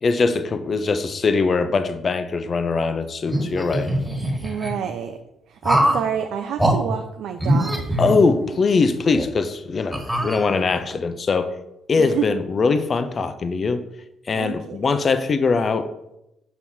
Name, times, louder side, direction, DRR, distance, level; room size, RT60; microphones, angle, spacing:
voice 1, 0.0-3.9 8.0-11.5 11.9-13.8 14.3-15.9, left 4 dB, 40° left, 11 dB, 0.5 m, -21 dB
sound 1, 3.2-4.7 5.6-6.1 6.6-6.8 7.4-8.6 9.1-9.2 9.9-10.8, right 1 dB, 5° right, 1.8 m, -23 dB
voice 2, 4.4-5.2 5.5-8.0 12.0-12.4 14.3-14.8, right 8 dB, 60° right, 5 dB, 0.4 m, -28 dB
6.8 x 6.1 x 2.7 m, 0.86 s
figure-of-eight pair, 45°, 0 cm